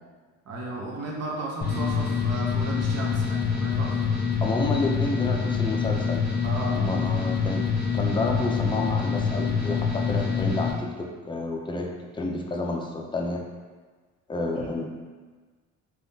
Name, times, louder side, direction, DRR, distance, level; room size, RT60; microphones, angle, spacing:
voice 1, 0.5-4.1 6.4-6.8 14.5-14.7, right 2 dB, 55° right, -2 dB, 0.8 m, -34 dB
sound 1, 1.6-10.7, left 5 dB, 30° left, 1.0 m, -26 dB
voice 2, 4.4-6.3 6.7-7.7 7.9-13.4 14.3-14.8, left 2 dB, 15° left, 1 dB, 0.4 m, -30 dB
3.4 x 2.4 x 2.7 m, 1.4 s
cardioid pair, 90°, 30 cm